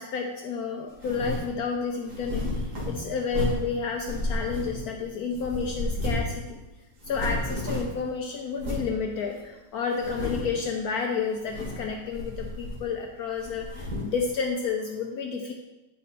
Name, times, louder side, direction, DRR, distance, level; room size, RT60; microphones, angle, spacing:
voice 1, 0.0-6.6 7.1-15.5, left 5 dB, 65° left, 2 dB, 1.0 m, -30 dB
sound 1, 1.0-1.5 2.1-3.7 4.1-5.0 5.3-6.4 6.6-6.7 7.0-8.0 8.6-8.9 9.4-9.5 9.9-10.6 11.3-11.9 12.1-13.0 13.4-14.2, left 2 dB, 45° right, 2.1 m, -32 dB
9.4 x 5.3 x 4.1 m, 1.0 s
omnidirectional pair, 1.9 m